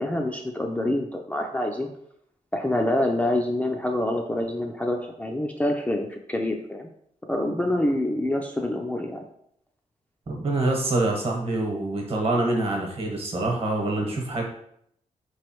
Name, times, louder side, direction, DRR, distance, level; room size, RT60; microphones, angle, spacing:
voice 1, 0.0-1.9 2.5-6.9 7.3-9.2, left 1 dB, 10° left, 2 dB, 0.3 m, -26 dB
voice 2, 10.3-14.4, right 2 dB, 45° right, 0 dB, 1.1 m, -25 dB
4.4 x 3.1 x 3.0 m, 0.70 s
wide cardioid pair, 135°, 13 cm